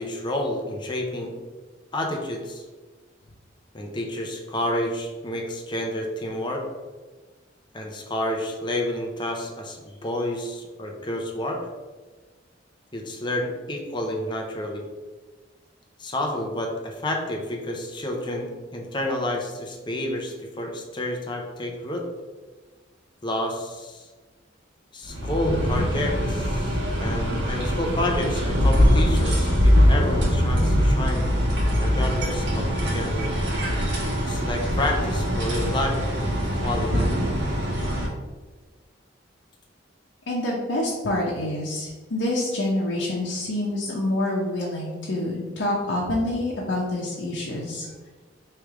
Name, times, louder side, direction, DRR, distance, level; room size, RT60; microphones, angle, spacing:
voice 1, 0.0-1.3 1.9-2.6 3.7-6.6 7.7-11.6 12.9-14.8 16.0-22.1 23.2-24.1 24.9-31.2 31.8-33.3 34.2-36.0 36.6-37.1, left 1 dB, 25° left, 1 dB, 0.6 m, -29 dB
sound 1, 25.0-38.1, equal, 70° right, 1.3 m, -22 dB
voice 2, 40.3-47.9, left 1 dB, 85° left, -4 dB, 0.8 m, -27 dB
3.2 x 3.2 x 4.8 m, 1.3 s
head